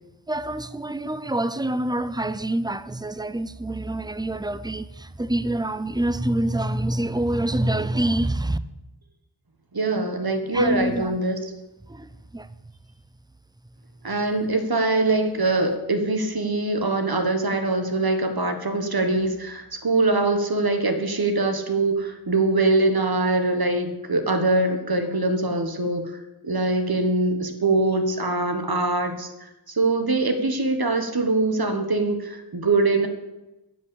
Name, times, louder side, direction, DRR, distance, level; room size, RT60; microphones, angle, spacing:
voice 1, 0.3-8.6 10.5-11.2 11.9-12.5, right 1 dB, 10° right, 0.5 m, -26 dB
voice 2, 9.7-11.4 14.0-26.1 26.4-33.1, right 2 dB, 50° right, 1.5 m, -23 dB
10.5 x 6.1 x 8.5 m
wide cardioid pair, 50°, 47 cm